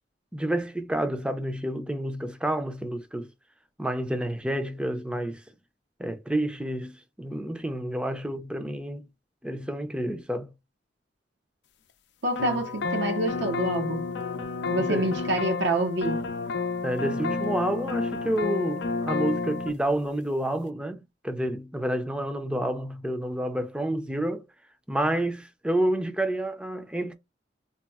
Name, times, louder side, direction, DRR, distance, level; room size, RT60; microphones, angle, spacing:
voice 1, 0.3-3.3 3.8-5.4 6.0-9.0 9.4-10.5 14.8-15.1 16.8-24.5 24.9-27.1, right 1 dB, 5° right, 0.5 m, -29 dB
voice 2, 12.2-14.0 14.7-16.2, right 2 dB, 75° right, 0.7 m, -27 dB
sound 1, 12.4-19.7, left 4 dB, 75° left, 0.5 m, -30 dB
4.0 x 2.0 x 2.3 m
head